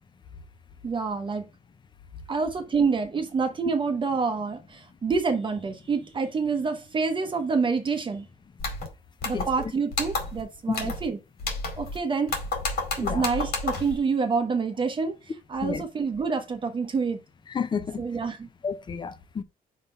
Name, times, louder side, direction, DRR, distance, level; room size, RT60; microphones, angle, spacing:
voice 1, 0.8-1.5 2.3-8.2 9.2-11.2 11.8-12.4 13.0-17.2 18.0-18.5, right 5 dB, 30° right, 0.8 m, -27 dB
sound 1, 8.6-8.9 9.2-9.6 9.9-10.4 10.7-11.1 11.4-12.0 12.3-14.0, left 3 dB, 85° left, 2.3 m, -30 dB
voice 2, 17.5-18.0 18.6-19.4, left 6 dB, 30° left, 0.6 m, -31 dB
5.6 x 3.6 x 5.6 m
cardioid pair, 155°, 16 cm